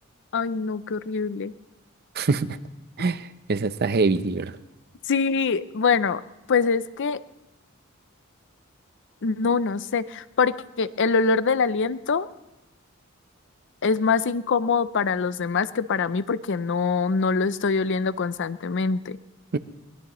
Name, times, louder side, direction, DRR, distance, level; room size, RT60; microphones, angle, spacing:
voice 1, 0.3-1.5 5.1-6.2 6.5-7.2 9.2-12.3 13.8-19.2, left 5 dB, 60° left, 15 dB, 0.5 m, -24 dB
voice 2, 2.2-2.6 3.0-3.2 3.5-4.5 19.5-19.6, right 3 dB, 50° right, 13 dB, 0.6 m, -23 dB
23.5 x 19.5 x 3.1 m, 1.0 s
head